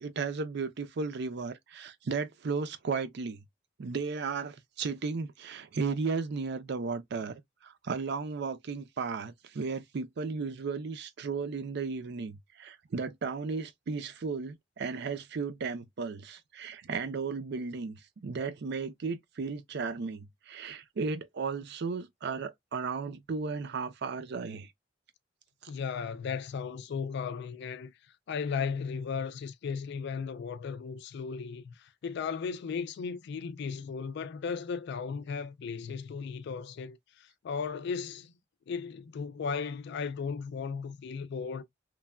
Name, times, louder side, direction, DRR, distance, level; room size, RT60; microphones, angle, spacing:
voice 1, 0.0-3.4 3.8-24.7, right 4 dB, 60° right, 0.5 m, -35 dB
voice 2, 25.7-27.9 28.3-38.3 38.7-41.6, left 5 dB, 60° left, 0.3 m, -36 dB
3.2 x 2.2 x 2.2 m
head